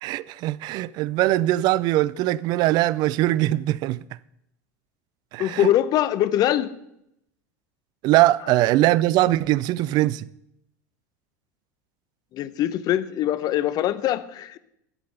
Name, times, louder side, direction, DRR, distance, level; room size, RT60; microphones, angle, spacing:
voice 1, 0.0-4.0 5.3-5.7 8.0-10.3, right 16 dB, 50° right, 0.4 m, -21 dB
voice 2, 5.4-6.7 12.3-14.6, left 12 dB, 45° left, 0.8 m, -23 dB
12.0 x 8.5 x 5.6 m
hypercardioid pair, 80°, 9 cm